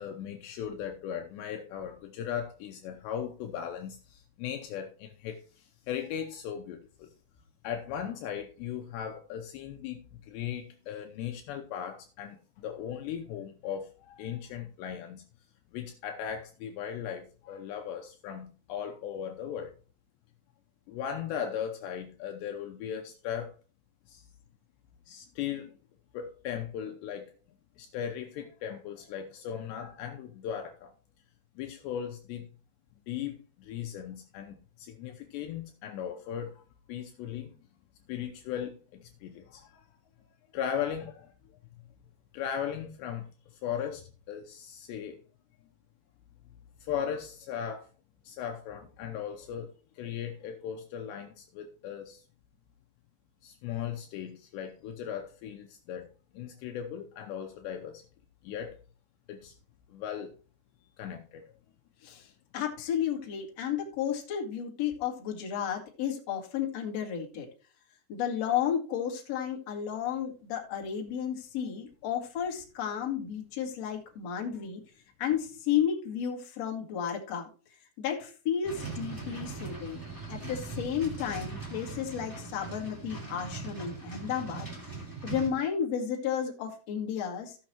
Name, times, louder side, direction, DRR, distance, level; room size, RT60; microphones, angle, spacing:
voice 1, 0.0-7.1 7.6-10.0 10.3-12.4 12.6-15.2 15.7-19.7 20.9-23.5 24.1-24.2 25.1-25.7 26.1-27.3 27.8-30.9 31.6-32.4 33.1-36.6 36.9-37.5 38.1-39.9 40.5-41.3 42.3-43.3 43.6-45.2 46.8-47.9 48.2-52.2 53.4-56.1 56.3-58.0 58.4-58.8 59.3-59.5 59.9-60.3 61.0-61.4, left 9 dB, 85° left, 2.6 m, -37 dB
voice 2, 62.5-67.5 68.1-74.8 75.2-77.5 78.0-80.0 80.3-84.7 85.2-87.6, left 8 dB, 50° left, 2.2 m, -32 dB
sound 1, 78.6-85.5, right 4 dB, 15° right, 0.7 m, -40 dB
16.0 x 6.3 x 3.0 m
omnidirectional pair, 5.7 m